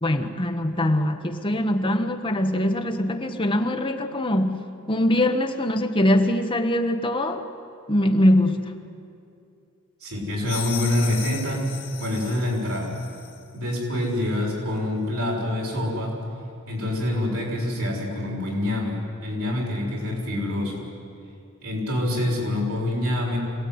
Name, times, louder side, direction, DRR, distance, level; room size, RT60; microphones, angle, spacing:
voice 1, 0.0-7.4 7.9-8.7, left 1 dB, 25° left, 6 dB, 1.2 m, -22 dB
voice 2, 10.0-11.7 12.0-12.9 13.5-16.2 16.7-20.8 21.6-23.4, left 1 dB, 75° right, -2 dB, 6.9 m, -26 dB
sound 1, 10.4-13.4, left 11 dB, 60° left, 1.7 m, -37 dB
26.0 x 18.0 x 9.6 m, 2.6 s
head